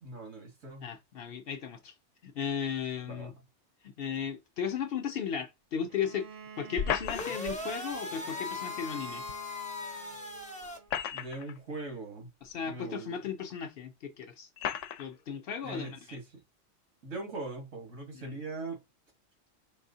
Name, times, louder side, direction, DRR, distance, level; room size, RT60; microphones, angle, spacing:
voice 1, 0.0-0.9 3.1-3.3 11.1-12.3 12.6-13.1 15.6-16.2 17.0-18.8, right 3 dB, 90° right, 1.8 m, -40 dB
voice 2, 0.8-1.9 2.2-3.3 3.8-6.3 6.6-9.2 12.4-14.5 15.0-16.2 18.1-18.4, left 7 dB, 60° left, 0.7 m, -36 dB
Bowed string instrument, 5.9-11.0, right 5 dB, 55° right, 0.7 m, -49 dB
sound 1, 6.8-7.6 9.3-9.4 10.6-11.6 12.4-12.5 13.5-13.6 14.6-15.1, left 9 dB, 85° left, 0.9 m, -34 dB
sound 2, 7.0-10.8, left 3 dB, 10° left, 0.4 m, -39 dB
4.7 x 3.5 x 2.7 m
omnidirectional pair, 1.2 m